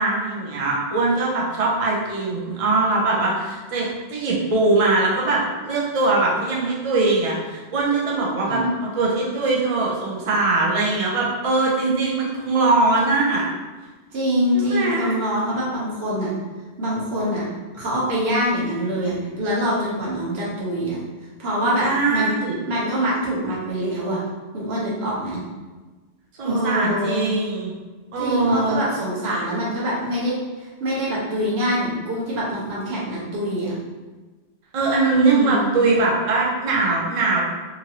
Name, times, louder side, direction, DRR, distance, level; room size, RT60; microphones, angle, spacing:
voice 1, 0.0-13.4 14.5-15.2 21.8-22.6 26.4-27.7 28.1-28.8 34.7-37.4, right 3 dB, 45° right, -4 dB, 0.5 m, -21 dB
voice 2, 8.4-8.7 14.1-16.3 16.8-17.4 17.7-21.0 21.4-22.3 22.7-24.2 24.5-25.4 26.4-27.2 28.2-33.7 35.1-35.7, equal, 70° right, -7 dB, 1.2 m, -24 dB
2.9 x 2.5 x 2.8 m, 1.3 s
omnidirectional pair, 1.1 m